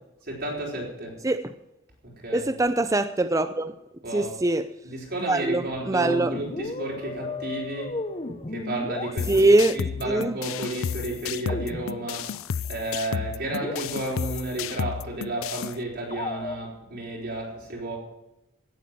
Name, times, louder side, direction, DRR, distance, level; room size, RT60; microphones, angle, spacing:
voice 1, 0.3-1.2 2.0-2.5 4.0-4.4 4.8-8.0 8.5-9.4 9.7-12.4 12.7-18.0, right 2 dB, 50° right, -2 dB, 4.6 m, -32 dB
voice 2, 2.3-3.7 4.1-4.7 5.3-6.3 9.3-9.8 10.1-10.4, right 2 dB, 15° right, 10 dB, 0.5 m, -22 dB
sound 1, 6.0-9.7 11.5-12.4 12.7-12.8 13.2-13.3 13.5-14.4 16.1-16.6, left 2 dB, 30° left, 1.0 m, -35 dB
sound 2, 9.2-15.8, left 7 dB, 90° left, 0.4 m, -32 dB
17.5 x 8.3 x 7.6 m, 0.91 s
head